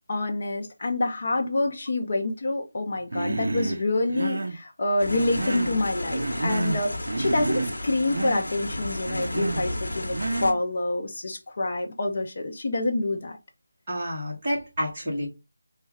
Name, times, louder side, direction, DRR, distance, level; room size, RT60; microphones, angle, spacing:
voice 1, 0.1-13.4, left 2 dB, 30° left, 0.5 m, -27 dB
Human voice, 3.1-3.8 4.1-4.6 5.1-5.8 6.1-6.8 7.1-7.8 8.1-8.5 9.1-9.6 10.1-10.6, right 2 dB, 45° right, 0.5 m, -29 dB
Rain inroom, 5.0-10.5, left 1 dB, 70° left, 0.9 m, -33 dB
voice 2, 13.9-15.3, equal, 15° right, 1.1 m, -29 dB
3.1 x 2.2 x 3.4 m
figure-of-eight pair, 180°, 0 cm